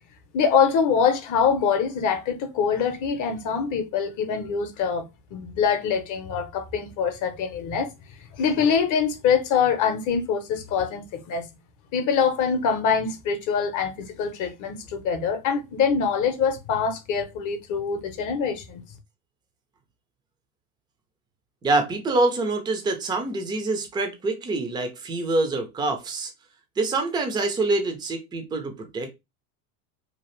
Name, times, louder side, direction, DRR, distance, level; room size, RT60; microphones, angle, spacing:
voice 1, 0.3-7.9 8.4-11.4 11.9-18.8, left 6 dB, 40° left, 0.7 m, -24 dB
voice 2, 21.6-26.3 26.8-29.1, right 2 dB, 10° right, 0.4 m, -25 dB
2.8 x 2.4 x 3.1 m
supercardioid pair, 120°, 47 cm